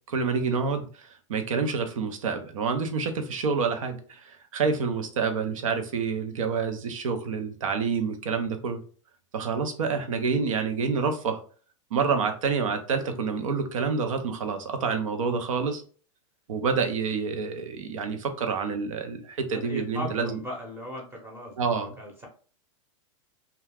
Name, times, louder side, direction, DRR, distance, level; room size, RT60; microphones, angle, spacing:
voice 1, 0.1-8.8 9.3-11.4 11.9-15.8 16.5-20.4 21.6-21.9, right 5 dB, 90° right, 6 dB, 0.6 m, -28 dB
voice 2, 19.5-22.3, left 1 dB, 15° right, 0 dB, 0.7 m, -38 dB
2.3 x 2.3 x 3.3 m, 0.42 s
supercardioid pair, 130°, 17 cm